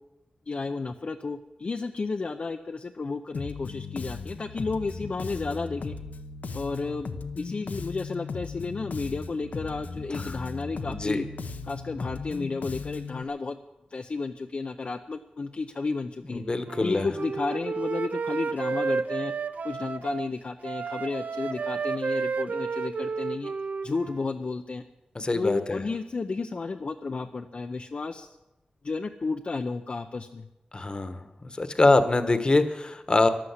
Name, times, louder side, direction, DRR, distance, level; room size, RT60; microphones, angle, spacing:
voice 1, 0.5-5.9 6.5-7.1 7.4-11.3 11.6-13.6 13.9-16.4 16.8-19.3 19.6-23.5 23.8-24.8 25.3-28.4 28.8-30.5, left 3 dB, 50° left, 5 dB, 0.7 m, -32 dB
Bass guitar, 3.3-13.2, left 4 dB, 80° left, 1.0 m, -37 dB
voice 2, 10.8-11.2 16.3-17.1 25.1-25.8 30.7-31.2 31.6-33.3, left 2 dB, 35° left, 10 dB, 1.2 m, -24 dB
Wind instrument woodwind instrument, 16.6-20.3 20.6-24.3, right 5 dB, 70° right, 0.6 m, -31 dB
13.5 x 11.5 x 8.2 m, 0.96 s
wide cardioid pair, 105°, 3 cm